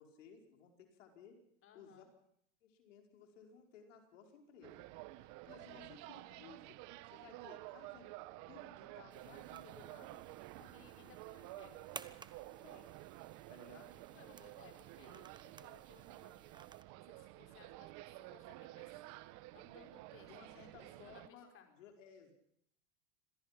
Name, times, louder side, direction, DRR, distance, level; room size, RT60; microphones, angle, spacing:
voice 1, 0.0-1.4 1.7-2.0 2.6-4.8 5.2-6.8 7.1-8.1 8.5-10.8 12.4-12.9 13.5-13.9 20.3-22.3, left 6 dB, 90° left, 3 dB, 5.0 m, -59 dB
voice 2, 1.6-2.1 5.5-5.9 10.7-11.8 14.1-16.3 16.9-18.9 19.2-21.7, left 6 dB, 35° left, 5 dB, 4.8 m, -63 dB
sound 1, 4.6-21.3, right 18 dB, 55° right, 1.2 m, -52 dB
sound 2, 9.1-16.8, right 4 dB, 10° right, 1.1 m, -57 dB
26.0 x 18.0 x 6.0 m, 0.70 s
supercardioid pair, 125°, 36 cm